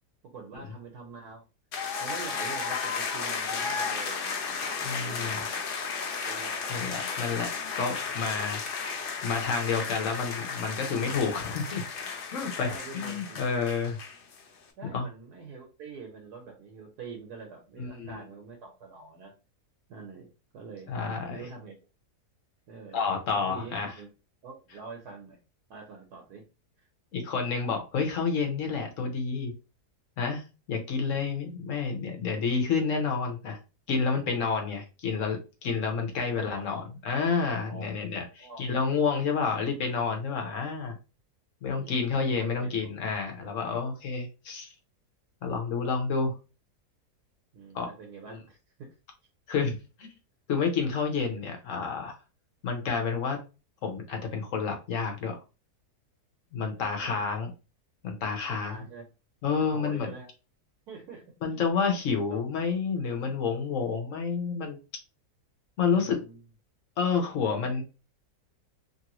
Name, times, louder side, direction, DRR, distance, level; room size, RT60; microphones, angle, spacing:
voice 1, 0.2-1.4 2.0-5.6 6.2-6.9 12.6-13.4 14.8-19.3 19.9-20.9 21.2-21.7 22.7-24.1 24.4-25.4 25.7-26.4 26.8-26.9 27.2-27.3 36.2-36.6 37.7-37.9 38.4-38.6 39.2-39.4 41.7-42.9 47.5-48.9 56.8-57.2 58.4-59.1 59.7-60.3 60.9-61.6 62.1-62.4 65.9-66.4, right 4 dB, 80° right, 1 dB, 1.3 m, -45 dB
sound 1, 1.7-14.4, left 5 dB, 75° left, 0.5 m, -34 dB
voice 2, 4.8-5.4 6.7-8.8 9.2-14.0 14.9-15.1 17.8-18.2 20.9-21.4 22.9-23.9 27.1-29.5 30.2-33.6 33.9-41.0 41.6-44.7 45.4-46.4 47.7-47.9 49.5-50.1 50.5-52.2 52.6-53.4 53.8-55.4 56.5-57.5 58.0-58.8 59.4-60.1 61.4-64.8 65.8-66.2 67.0-67.8, left 5 dB, 60° left, 4 dB, 1.0 m, -29 dB
3.0 x 2.6 x 2.9 m, 0.30 s
omnidirectional pair, 1.7 m